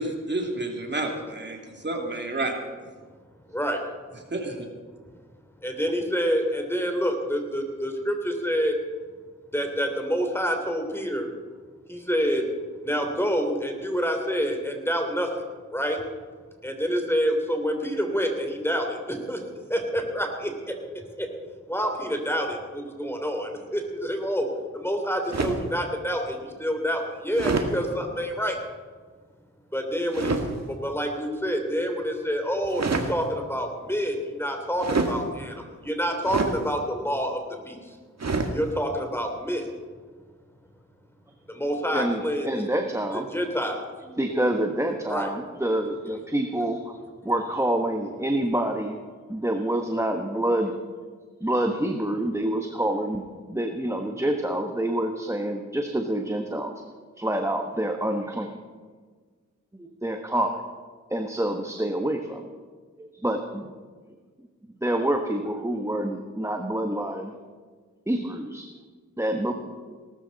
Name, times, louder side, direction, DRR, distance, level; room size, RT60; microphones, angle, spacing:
voice 1, 0.0-2.6 4.3-4.7, right 2 dB, 35° right, 2 dB, 2.9 m, -30 dB
voice 2, 3.5-3.8 5.6-8.7 9.5-11.3 11.9-12.4 12.8-15.3 15.7-16.0 16.6-19.4 19.7-20.7 21.2-21.3 21.7-24.5 24.7-28.6 29.7-30.4 30.7-37.8 38.5-39.7 41.5-42.6 43.3-43.8 45.1-45.3, equal, 5° left, 4 dB, 3.3 m, -27 dB
sound 1, 25.3-25.7 27.3-27.7 30.1-30.5 32.6-33.1 34.8-35.2 36.2-36.6 38.2-38.5, right 3 dB, 55° right, 1.9 m, -26 dB
voice 3, 41.9-43.3 44.1-47.0 47.2-49.0 49.3-50.7 51.4-56.8 57.2-58.6 59.7-60.6 61.1-62.5 63.0-63.7 64.8-67.4 68.1-68.7 69.2-69.5, right 1 dB, 10° right, 4 dB, 1.3 m, -27 dB
19.0 x 13.5 x 4.2 m, 1.5 s
cardioid pair, 50°, 31 cm